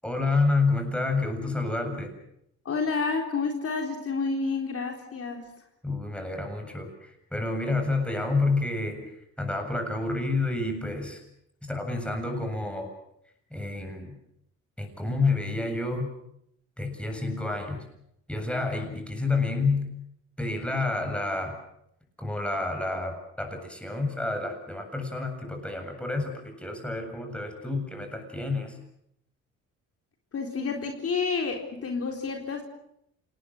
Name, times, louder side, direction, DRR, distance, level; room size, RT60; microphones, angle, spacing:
voice 1, 0.0-2.2 5.8-11.2 11.7-12.9 13.5-14.2 14.8-16.1 16.8-17.8 18.3-19.9 20.4-21.6 22.2-28.8, left 3 dB, 5° left, 4 dB, 7.8 m, -29 dB
voice 2, 2.6-5.4 30.3-32.6, left 4 dB, 50° left, 3 dB, 4.0 m, -29 dB
28.0 x 19.5 x 7.9 m, 0.75 s
cardioid pair, 90°, 30 cm